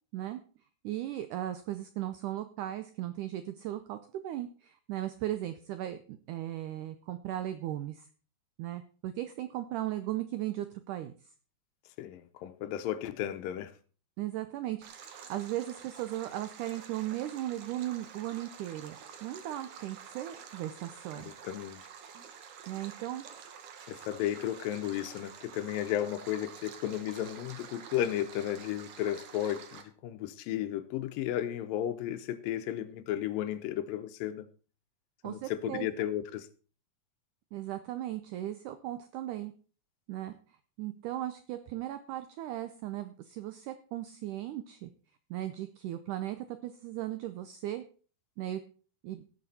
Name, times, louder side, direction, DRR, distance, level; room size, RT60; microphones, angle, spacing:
voice 1, 0.8-8.1 8.6-11.1 14.2-21.3 22.7-23.2 35.2-35.9 37.5-39.5 40.1-40.3 40.8-44.9 45.3-47.8 48.4-48.6 49.0-49.2, right 13 dB, 90° right, 1.7 m, -37 dB
voice 2, 12.0-13.7 21.2-21.8 23.9-34.5 35.2-36.5, left 12 dB, 75° left, 2.3 m, -34 dB
Stream, 14.8-29.8, right 7 dB, 65° right, 2.4 m, -49 dB
17.5 x 6.7 x 4.2 m
omnidirectional pair, 4.4 m